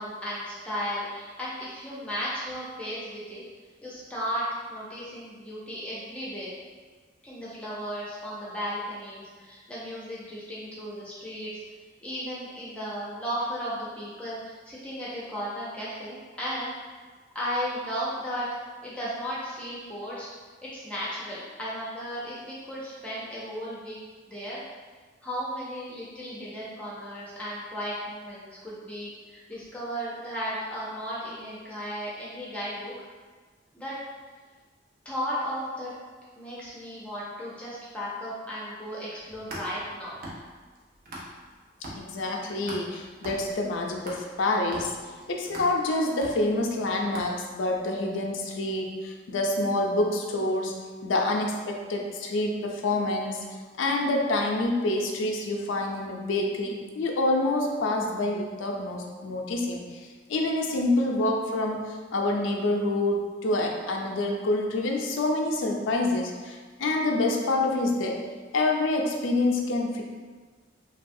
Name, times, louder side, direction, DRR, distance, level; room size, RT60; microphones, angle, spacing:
voice 1, 0.0-3.4 3.8-6.5 7.2-11.5 12.0-16.7 17.3-18.5 18.8-20.3 20.6-24.0 24.3-24.6 25.2-32.9 33.7-34.0 35.0-35.9 36.4-40.1, equal, 5° left, -8 dB, 0.6 m, -35 dB
sound 1, 39.2-41.5 41.8-47.8, right 1 dB, 50° right, 0.6 m, -42 dB
voice 2, 41.9-44.9 45.3-50.7 51.0-53.5 53.8-59.8 60.3-68.2 68.5-70.0, left 2 dB, 85° left, 1 dB, 0.4 m, -27 dB
3.3 x 2.3 x 2.6 m, 1.5 s
head